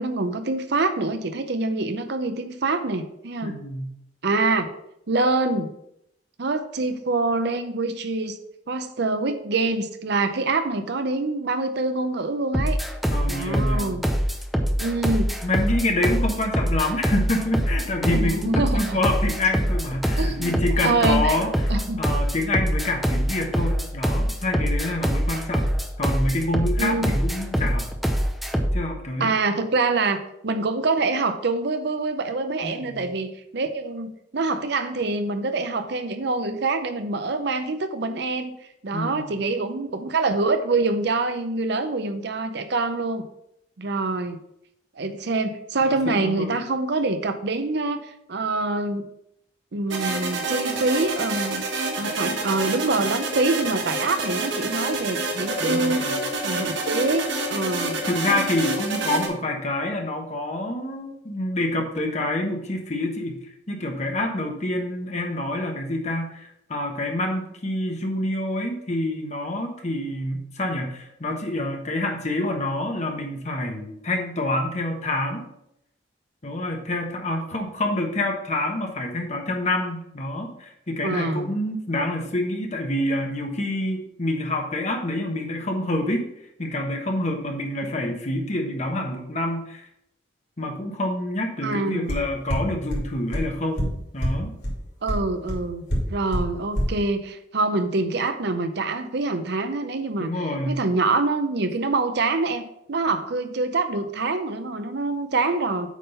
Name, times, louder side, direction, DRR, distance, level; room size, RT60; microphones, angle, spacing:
voice 1, 0.0-3.6 4.2-4.7 5.1-5.7 6.4-8.4 8.7-12.8 13.3-14.0 14.8-15.3 18.1-19.0 20.2-20.5 20.8-21.4 21.7-22.1 26.8-27.2 29.2-38.6 38.8-43.3 43.8-44.4 45.0-49.1 49.7-51.6 52.0-56.1 56.4-58.0 81.0-81.5 91.6-92.2 95.0-100.3 100.7-105.9, right 3 dB, 65° right, 9 dB, 0.7 m, -25 dB
voice 2, 3.4-3.9 13.1-14.0 15.4-27.9 28.7-29.3 32.6-33.1 38.9-39.3 45.8-46.5 55.6-56.2 58.1-75.4 76.4-86.3 86.6-89.9 90.6-94.5 100.2-100.8, left 1 dB, 40° left, 2 dB, 1.2 m, -27 dB
sound 1, 12.5-28.8, equal, ahead, 0.6 m, -24 dB
sound 2, 49.9-59.3, right 2 dB, 80° right, 1.5 m, -28 dB
sound 3, 92.1-92.2 92.5-92.6 92.9-93.0 93.3-93.4 93.8-93.9 94.2-94.3 94.6-94.7 95.1-95.2 95.5-95.6 95.9-96.0 96.3-96.4 96.8-96.9, equal, 60° left, 3.0 m, -24 dB
8.3 x 3.8 x 5.5 m, 0.78 s
head